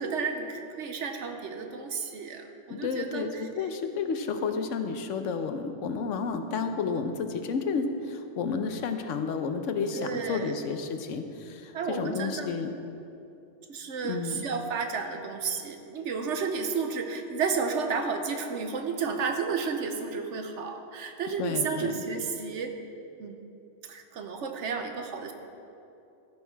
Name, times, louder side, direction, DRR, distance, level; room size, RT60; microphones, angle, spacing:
voice 1, 0.0-3.5 4.0-4.1 9.9-10.6 11.7-12.7 13.7-22.7 23.2-23.4 23.9-25.3, right 5 dB, 70° right, 5 dB, 1.1 m, -32 dB
voice 2, 2.7-12.7 14.0-14.4 21.4-22.0, left 5 dB, 75° left, 7 dB, 1.0 m, -31 dB
14.0 x 6.4 x 4.6 m, 2.7 s
omnidirectional pair, 1.3 m